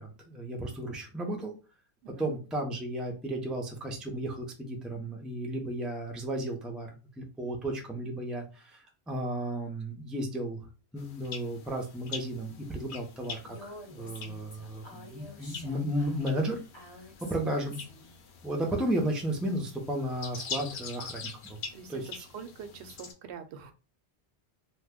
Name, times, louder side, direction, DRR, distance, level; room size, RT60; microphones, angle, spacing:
voice 1, 0.0-1.5 2.2-10.6 10.9-16.6 17.3-17.8 18.4-21.6 21.9-22.1, right 1 dB, ahead, 1 dB, 0.4 m, -34 dB
sound 1, 11.0-23.1, left 5 dB, 85° left, 0.9 m, -44 dB
Female speech woman speaking, 13.5-18.1, left 1 dB, 25° left, 0.8 m, -49 dB
voice 2, 21.7-23.7, right 6 dB, 85° right, 8 dB, 0.8 m, -45 dB
2.8 x 2.2 x 3.5 m, 0.33 s
omnidirectional pair, 1.1 m